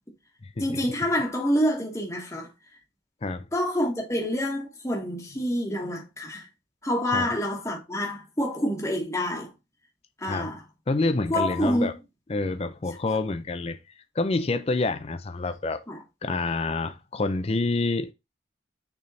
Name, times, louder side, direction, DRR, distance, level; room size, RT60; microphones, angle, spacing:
voice 1, 0.6-2.5 3.5-6.4 6.8-9.5 10.2-10.6 11.3-11.9 13.1-13.2 15.9-16.0, equal, 15° left, 1.2 m, -27 dB
voice 2, 10.9-11.9 12.3-13.8 14.2-15.8 16.2-18.1, left 3 dB, 35° left, 0.5 m, -27 dB
6.7 x 3.6 x 4.0 m
head